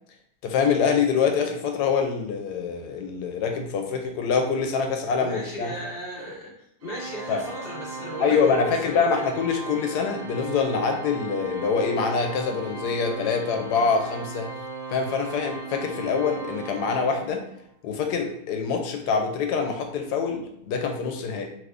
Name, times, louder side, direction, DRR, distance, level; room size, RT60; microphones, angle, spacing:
voice 1, 0.4-5.7 7.3-7.4 8.2-14.5 14.9-17.5 17.8-21.5, left 5 dB, 90° left, 4 dB, 1.2 m, -25 dB
voice 2, 5.2-6.5 6.8-9.1, equal, 55° left, -4 dB, 0.7 m, -36 dB
Organ, 6.8-17.6, right 3 dB, 75° right, 1.1 m, -38 dB
2.9 x 2.5 x 3.4 m, 0.76 s
omnidirectional pair, 1.7 m